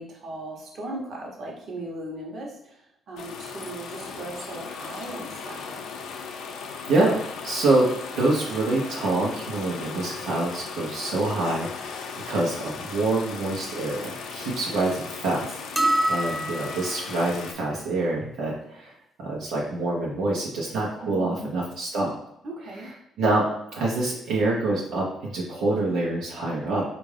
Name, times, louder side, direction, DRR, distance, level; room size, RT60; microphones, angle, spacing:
voice 1, 0.0-5.8 21.0-21.5 22.4-22.9, right 1 dB, 60° right, -2 dB, 1.0 m, -38 dB
sound 1, 3.2-17.5, left 5 dB, 85° left, 0.4 m, -37 dB
voice 2, 7.4-7.9 8.1-22.1 23.2-26.8, right 2 dB, 85° right, -4 dB, 0.8 m, -26 dB
sound 2, 15.8-17.1, right 1 dB, 5° right, 0.4 m, -25 dB
3.5 x 2.5 x 3.3 m, 0.79 s
cardioid pair, 90°, 0 cm